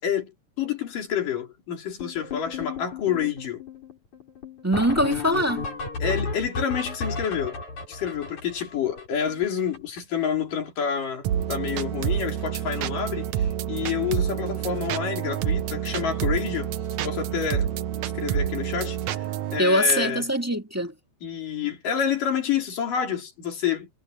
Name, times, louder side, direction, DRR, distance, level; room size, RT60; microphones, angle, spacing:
voice 1, 0.6-3.6 6.0-7.6 7.9-16.7 17.0-17.7 18.1-19.3 19.5-20.2 21.2-23.9, left 8 dB, 85° left, 5.2 m, -28 dB
sound 1, 2.0-10.2 10.5-10.6 10.8-11.1 11.3-11.9 12.2-12.4 13.2-13.3 13.7-13.8 14.1-14.3 16.6-16.7 19.0-19.1, left 4 dB, 65° left, 8.0 m, -34 dB
voice 2, 4.6-5.7 19.6-20.9, equal, 5° right, 1.3 m, -23 dB
sound 2, 11.2-19.6, right 10 dB, 70° right, 2.2 m, -28 dB
omnidirectional pair, 3.7 m